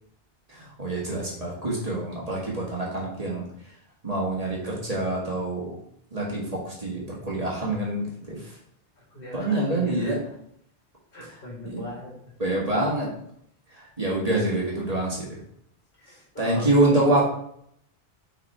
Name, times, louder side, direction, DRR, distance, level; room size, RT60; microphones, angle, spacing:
voice 1, 0.5-3.4 4.0-5.7 6.1-8.5 9.3-10.2 11.6-11.8 12.4-13.1 13.7-15.4 16.4-17.2, right 2 dB, 40° right, -4 dB, 1.8 m, -26 dB
voice 2, 9.1-10.2 11.1-12.1 16.0-17.1, equal, 60° left, -3 dB, 2.4 m, -39 dB
6.7 x 4.1 x 4.2 m, 0.70 s
omnidirectional pair, 1.0 m